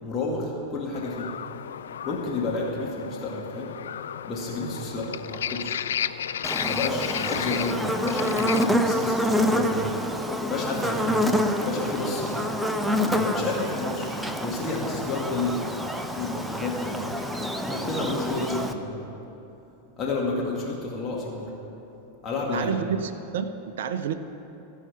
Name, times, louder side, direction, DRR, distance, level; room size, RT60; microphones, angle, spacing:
voice 1, 0.0-1.3 2.0-3.8 4.2-5.8 6.6-9.9 10.5-11.2 11.6-12.5 13.1-14.1 14.4-15.7 16.1-17.0 17.6-19.1 20.0-21.5 22.2-22.8, left 3 dB, 20° left, -3 dB, 2.2 m, -30 dB
sound 1, 0.9-8.7, left 9 dB, 65° left, 0.3 m, -33 dB
Buzz, 6.4-18.7, equal, 5° right, 0.7 m, -27 dB
voice 2, 22.5-24.1, right 8 dB, 60° right, 11 dB, 0.6 m, -29 dB
16.5 x 5.6 x 9.3 m, 3.0 s
figure-of-eight pair, 90°, 0 cm